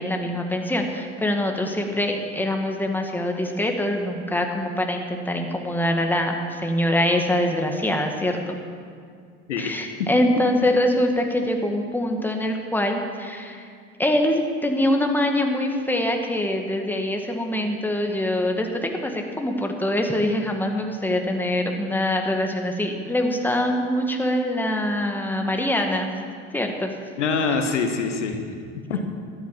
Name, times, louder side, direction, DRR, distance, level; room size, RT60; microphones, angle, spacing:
voice 1, 0.0-8.6 9.6-13.7 14.0-26.1 26.5-27.0, left 1 dB, 5° left, 3 dB, 1.8 m, -24 dB
voice 2, 10.4-10.7 27.2-28.4 28.9-29.1, left 4 dB, 85° left, 5 dB, 1.3 m, -25 dB
13.0 x 10.5 x 7.3 m, 2.2 s
hypercardioid pair, 75°, 35 cm